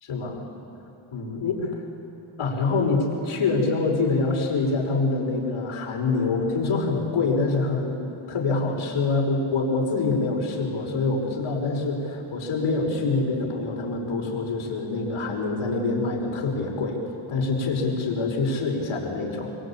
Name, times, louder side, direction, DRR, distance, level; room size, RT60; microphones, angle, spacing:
voice 1, 0.1-0.4 1.1-1.8 2.4-8.0 8.3-17.0 17.3-19.6, left 3 dB, 80° left, 0 dB, 5.8 m, -25 dB
26.0 x 25.0 x 9.0 m, 2.9 s
wide cardioid pair, 125°, 49 cm